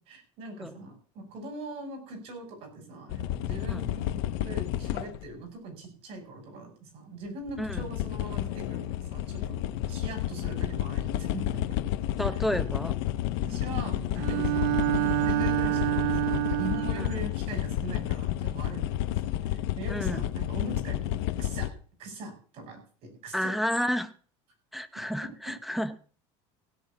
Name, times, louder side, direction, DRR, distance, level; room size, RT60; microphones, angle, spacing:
voice 1, 0.0-9.6 9.9-11.6 12.3-12.4 13.4-21.7 22.0-22.8 23.2-23.5, right 2 dB, 50° right, 4 dB, 6.5 m, -41 dB
sound 1, 3.1-5.3 7.3-21.7, left 12 dB, 80° left, 1.1 m, -31 dB
voice 2, 12.2-13.0 17.0-17.1 19.9-20.3 23.3-24.1 24.7-26.0, equal, ahead, 9 dB, 0.6 m, -31 dB
Bowed string instrument, 14.1-17.3, right 17 dB, 70° right, 0.7 m, -27 dB
16.5 x 5.5 x 8.4 m, 0.42 s
cardioid pair, 160°, 13 cm